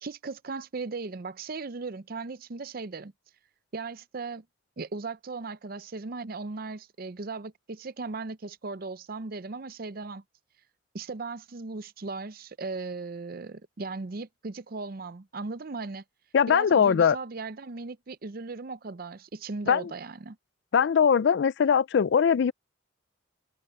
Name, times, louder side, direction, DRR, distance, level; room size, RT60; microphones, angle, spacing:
voice 1, 0.0-3.1 3.7-4.4 4.8-10.2 10.9-16.0 16.5-20.4, right 3 dB, 50° right, 0.6 m, -37 dB
voice 2, 16.3-17.2 19.7-19.9 20.7-22.5, left 7 dB, 60° left, 0.3 m, -21 dB
head